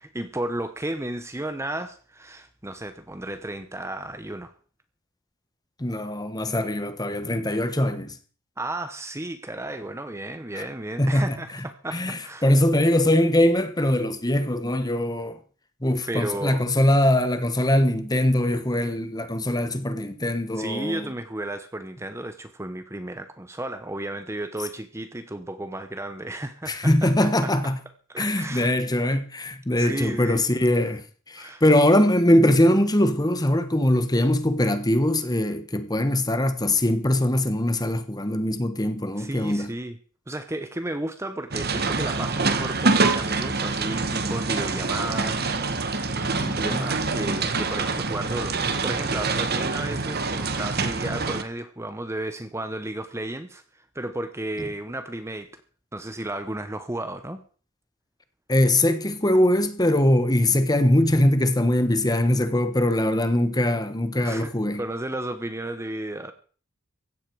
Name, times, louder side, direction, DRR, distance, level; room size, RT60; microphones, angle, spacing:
voice 1, 0.0-4.5 8.6-12.5 16.1-16.6 20.6-27.1 27.4-27.5 28.1-28.7 29.8-30.4 31.4-31.6 39.2-40.0 40.3-48.6 48.8-55.5 55.9-57.4 64.2-64.5 64.8-66.3, right 1 dB, 15° right, 0.9 m, -33 dB
voice 2, 5.8-8.2 10.5-10.7 11.0-11.4 11.9-15.4 15.8-21.1 26.7-27.8 28.2-39.7 46.4-46.9 58.5-64.8, left 1 dB, 20° left, 1.3 m, -22 dB
sound 1, 41.5-51.4, right 3 dB, 50° right, 1.6 m, -26 dB
16.0 x 12.5 x 4.8 m
head